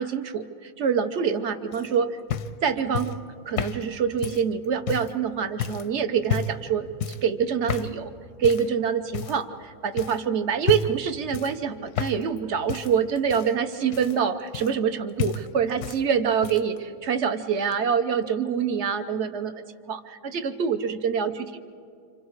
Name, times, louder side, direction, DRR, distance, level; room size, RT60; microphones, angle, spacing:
voice 1, 0.0-2.2 2.6-3.2 3.5-8.1 8.4-21.6, right 7 dB, 50° right, 9 dB, 1.0 m, -26 dB
sound 1, 1.7-5.2 5.6-5.9 6.2-6.7 7.0-7.3 7.7-8.0 8.4-8.7 9.1-9.6 10.0-10.2 10.6-11.0 11.3-12.4 12.7-14.9 15.2-16.0 16.3-16.8 17.7-17.8, left 7 dB, 85° left, 1.3 m, -31 dB
29.5 x 26.0 x 4.8 m, 2.4 s
omnidirectional pair, 1.6 m